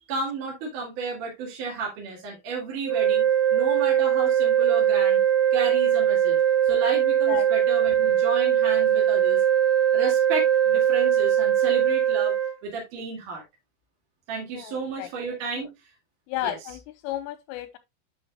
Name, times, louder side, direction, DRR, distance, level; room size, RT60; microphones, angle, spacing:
voice 1, 0.1-3.2 3.5-5.2 5.5-6.4 6.6-9.4 9.9-12.3 12.6-13.4 14.3-15.7 16.4-16.8, right 4 dB, 50° right, 2.9 m, -33 dB
sound 1, 2.8-12.5, right 10 dB, 70° right, 4.8 m, -21 dB
voice 2, 14.5-15.1 15.6-15.7 16.3-17.8, left 14 dB, 90° left, 3.3 m, -33 dB
10.5 x 6.0 x 2.2 m
omnidirectional pair, 5.9 m